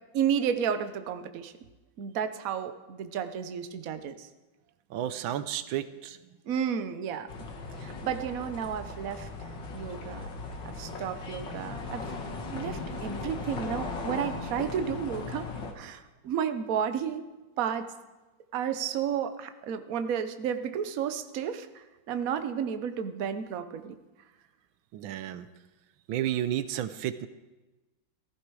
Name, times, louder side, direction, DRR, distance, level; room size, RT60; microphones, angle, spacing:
voice 1, 0.1-1.5 2.0-4.3 6.5-7.3 7.8-10.3 10.6-12.0 12.5-15.5 15.7-17.3 17.6-17.9 18.5-24.0, right 8 dB, 55° right, 9 dB, 1.2 m, -32 dB
voice 2, 4.9-6.2 24.9-25.5 26.1-27.3, right 11 dB, 85° right, 12 dB, 1.5 m, -32 dB
sound 1, 7.3-15.7, left 3 dB, 65° left, 2.3 m, -38 dB
15.5 x 15.0 x 4.8 m, 1.1 s
omnidirectional pair, 2.1 m